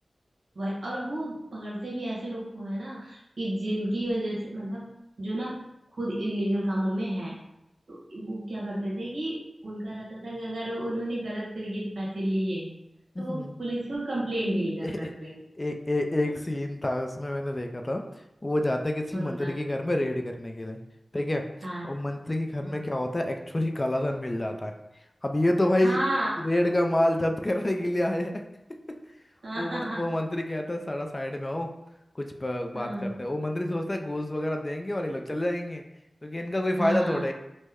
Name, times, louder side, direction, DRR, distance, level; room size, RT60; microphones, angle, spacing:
voice 1, 0.5-4.9 5.2-5.7 5.9-7.4 7.9-12.8 13.2-15.4 16.2-16.3 19.1-19.5 21.6-21.9 22.6-22.8 25.8-26.3 29.4-30.0 32.7-33.1 36.8-37.2, right 1 dB, 80° right, -7 dB, 1.2 m, -31 dB
voice 2, 13.2-13.5 14.8-15.0 15.6-18.0 18.4-20.8 21.1-21.4 21.8-24.7 25.2-26.0 26.4-28.4 29.6-31.7 32.2-35.8 36.2-37.3, left 1 dB, 35° left, 4 dB, 0.4 m, -28 dB
3.1 x 2.1 x 3.5 m, 0.87 s
cardioid pair, 40°, 0 cm